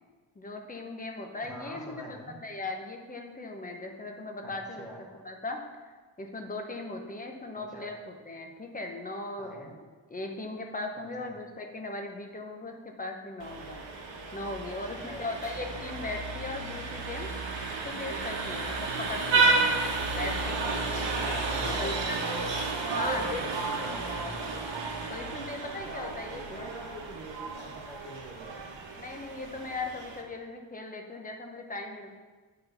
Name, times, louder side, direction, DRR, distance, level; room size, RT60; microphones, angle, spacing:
voice 1, 0.4-4.8 5.2-5.6 6.2-9.8 10.1-13.8 14.3-17.3 17.7-19.6 20.1-22.2 22.9-23.4 25.1-26.7 29.0-32.1, left 2 dB, 15° left, 3 dB, 0.8 m, -38 dB
voice 2, 1.4-2.4 4.4-4.5 4.8-5.0 7.5-7.9 9.4-9.7 11.0-11.3 15.1-15.5 19.1-19.5 21.2-22.2 22.9-24.4 25.9-28.7, right 1 dB, ahead, -4 dB, 1.3 m, -45 dB
Vehicle horn car horn honking, 13.4-30.2, right 3 dB, 60° right, 1.2 m, -32 dB
7.7 x 4.4 x 6.6 m, 1.4 s
wide cardioid pair, 180°, 48 cm